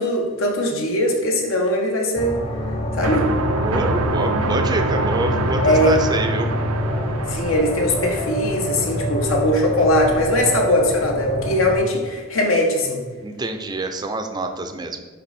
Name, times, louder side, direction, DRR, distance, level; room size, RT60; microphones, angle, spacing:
voice 1, 0.0-2.4 3.0-3.3 5.6-5.9 7.3-13.0, left 1 dB, 70° left, 1 dB, 1.2 m, -20 dB
sound 1, 2.2-11.8, equal, 25° left, 0.7 m, -26 dB
sound 2, 3.0-9.7, right 3 dB, 85° right, 0.5 m, -26 dB
voice 2, 3.6-6.5 13.2-15.0, right 2 dB, 20° right, 6 dB, 0.4 m, -26 dB
9.8 x 3.4 x 4.2 m, 1.4 s
head